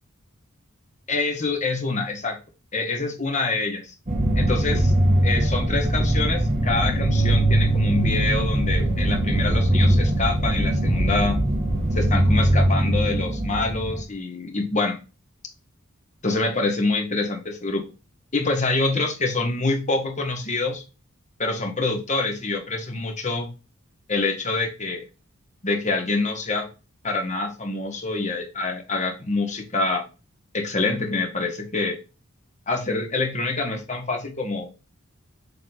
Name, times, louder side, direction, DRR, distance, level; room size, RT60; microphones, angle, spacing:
voice 1, 1.1-2.4 2.7-3.9 4.4-4.9 5.2-11.4 11.9-15.0 16.2-17.8 18.3-20.8 21.4-23.5 24.1-25.0 25.6-26.7 27.0-30.1 30.5-32.0 32.7-34.7, left 3 dB, 35° left, 4 dB, 1.4 m, -26 dB
sound 1, 4.1-14.0, right 1 dB, 35° right, 1.6 m, -21 dB
7.0 x 3.6 x 3.9 m, 0.32 s
head